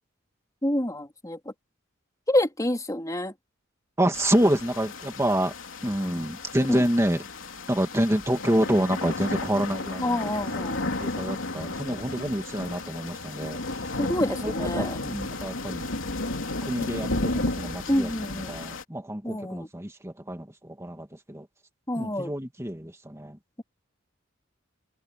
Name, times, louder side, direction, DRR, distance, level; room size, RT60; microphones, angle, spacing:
voice 1, 0.6-1.4 2.3-3.3 6.7-6.8 10.0-10.8 14.0-15.0 17.9-18.6 19.2-19.7 21.9-22.3, left 1 dB, 15° left, 3.4 m, -27 dB
voice 2, 4.0-5.5 5.8-7.3 7.7-10.3 11.0-14.0 14.4-15.9 16.6-21.5 22.0-23.4, right 1 dB, 15° right, 2.4 m, -27 dB
sound 1, 4.1-18.8, left 2 dB, 75° left, 3.3 m, -33 dB
head